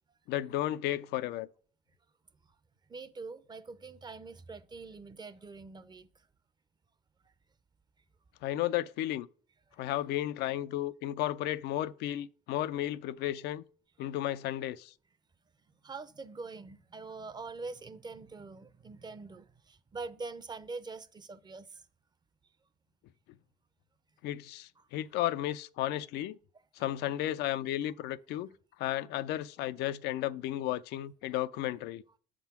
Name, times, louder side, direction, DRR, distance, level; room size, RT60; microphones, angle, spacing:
voice 1, 0.3-1.5 8.4-9.3 9.8-13.6 14.0-14.9 24.2-26.4 26.8-28.5 28.8-32.0, left 13 dB, 80° left, 0.4 m, -33 dB
voice 2, 2.9-6.1 15.8-21.8 24.8-24.9, right 4 dB, 25° right, 0.6 m, -44 dB
7.3 x 3.7 x 5.9 m
cardioid pair, 110°, 17 cm